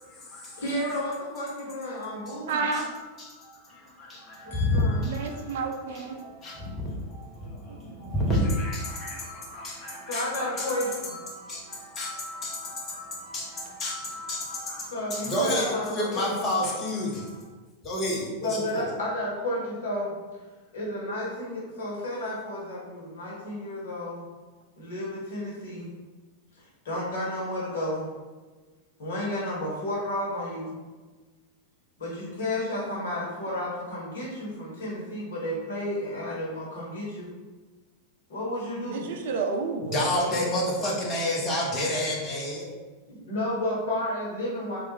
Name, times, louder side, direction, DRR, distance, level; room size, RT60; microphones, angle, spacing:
voice 1, 0.0-0.6 2.7-2.8 3.2-5.6 5.9-17.4 17.8-18.9 39.8-42.7, left 1 dB, 25° left, -3 dB, 0.9 m, -30 dB
voice 2, 0.6-2.6 4.4-5.6 10.1-11.1 14.9-16.3 18.4-20.1 20.7-24.3 24.8-25.9 26.6-28.1 29.0-30.7 32.0-37.3 38.3-39.0 43.1-44.8, left 1 dB, 60° left, -4 dB, 1.1 m, -32 dB
voice 3, 2.5-2.9 5.0-6.2 7.7-7.8 38.9-40.5, right 4 dB, 55° right, 4 dB, 0.4 m, -30 dB
3.2 x 2.4 x 3.3 m, 1.3 s
figure-of-eight pair, 90°, 0 cm